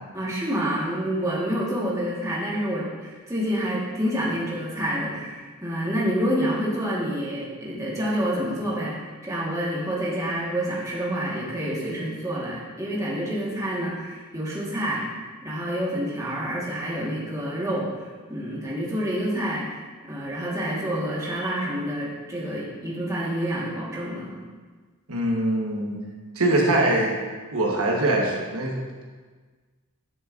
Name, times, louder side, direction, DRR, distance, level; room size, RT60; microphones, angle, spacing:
voice 1, 0.1-8.9 9.2-15.0 15.4-17.9 18.3-19.8 20.0-24.4, equal, 15° right, -5 dB, 1.6 m, -28 dB
voice 2, 25.1-26.0 26.3-27.2 27.5-29.0, right 1 dB, 85° right, -1 dB, 1.3 m, -23 dB
11.0 x 6.3 x 2.6 m, 1.4 s
head